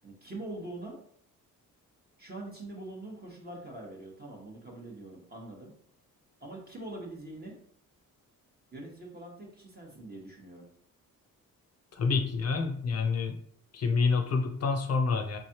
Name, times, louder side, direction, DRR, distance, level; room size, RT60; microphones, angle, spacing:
voice 1, 0.0-1.0 2.2-5.7 6.4-7.6 8.7-10.7, right 2 dB, 30° right, -1 dB, 0.9 m, -43 dB
voice 2, 11.9-13.4 13.7-15.4, left 4 dB, 45° left, 5 dB, 0.5 m, -28 dB
3.5 x 3.2 x 2.8 m, 0.62 s
cardioid pair, 85°, 35 cm